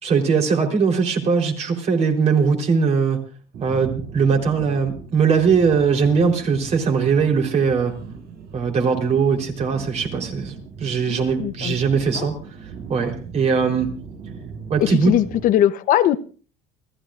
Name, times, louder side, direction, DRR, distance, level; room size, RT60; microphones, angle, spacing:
voice 1, 0.0-3.2 3.6-8.0 8.5-13.9 14.7-15.2, right 5 dB, 40° right, 3 dB, 3.8 m, -20 dB
sound 1, 3.5-15.4, right 5 dB, 70° right, 6.1 m, -38 dB
voice 2, 11.1-11.7 12.2-12.3 14.8-16.2, left 12 dB, 55° left, 12 dB, 0.9 m, -20 dB
30.0 x 13.5 x 2.5 m, 0.38 s
cardioid pair, 135°, 17 cm